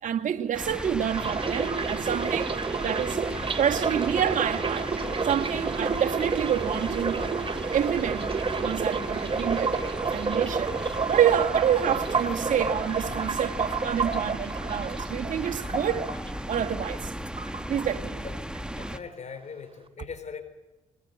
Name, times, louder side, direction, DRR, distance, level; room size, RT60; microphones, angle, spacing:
voice 1, 0.0-4.9 5.2-7.2 7.7-8.3 8.6-9.8 10.0-10.8 11.1-16.1 16.5-17.1 17.7-18.2, right 9 dB, 60° right, 1.9 m, -28 dB
sound 1, 0.5-19.0, equal, 5° right, 1.3 m, -36 dB
sound 2, 1.1-17.1 17.4-18.3 18.5-18.9, right 5 dB, 40° right, 2.5 m, -30 dB
voice 2, 18.7-20.4, left 6 dB, 55° left, 4.2 m, -40 dB
22.0 x 20.0 x 9.0 m
supercardioid pair, 55°, 15 cm